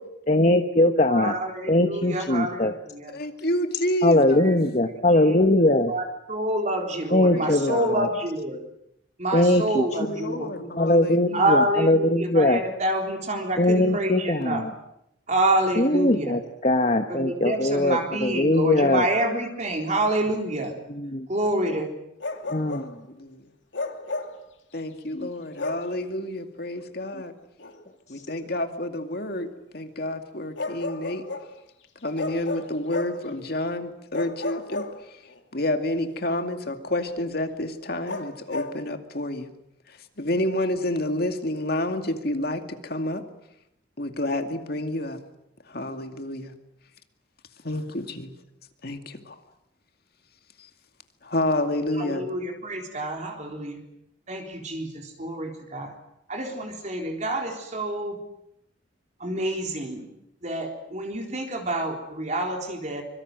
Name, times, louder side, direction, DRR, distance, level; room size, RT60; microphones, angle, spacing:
voice 1, 0.3-1.4 1.7-2.7 4.0-5.9 7.1-8.1 9.3-9.8 10.8-12.6 13.6-14.7 15.8-19.0 20.9-21.3 22.5-22.9 25.2-25.3, left 1 dB, 35° left, 6 dB, 1.2 m, -21 dB
voice 2, 1.1-3.1 4.4-4.5 5.2-5.4 5.9-6.0 6.3-8.6 9.2-10.6 11.3-14.6 15.3-16.4 17.1-20.7 21.3-21.9 52.0-53.8 54.3-55.9 56.3-58.2 59.2-60.1 60.4-63.0, right 1 dB, 40° right, 2 dB, 3.8 m, -27 dB
voice 3, 3.1-4.6 7.3-8.0 10.0-11.6 22.6-22.9 23.2-23.4 24.7-27.3 28.1-31.3 32.0-34.9 35.5-39.5 39.9-43.2 44.0-45.2 45.7-46.5 47.6-48.3 48.8-49.4 51.2-52.3, left 1 dB, 55° left, 6 dB, 2.3 m, -29 dB
Bark, 22.2-22.9 23.7-24.4 25.6-25.9 27.6-27.8 30.6-31.5 32.2-33.3 34.1-35.4 38.1-38.8, left 3 dB, 75° left, 2.8 m, -33 dB
25.0 x 24.0 x 7.8 m, 0.80 s
head